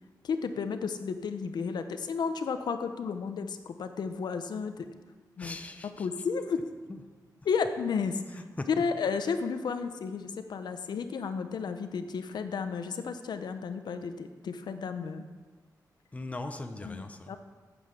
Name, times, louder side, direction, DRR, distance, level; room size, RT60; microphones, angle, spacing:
voice 1, 0.2-4.9 5.4-5.6 6.0-6.6 7.4-8.2 8.8-15.2 16.8-17.4, left 5 dB, 80° left, 8 dB, 0.7 m, -33 dB
voice 2, 5.4-6.1 6.9-7.0 8.3-8.7 16.1-17.4, left 2 dB, 20° left, 6 dB, 0.7 m, -40 dB
8.9 x 7.9 x 6.4 m, 1.4 s
wide cardioid pair, 165°, 7 cm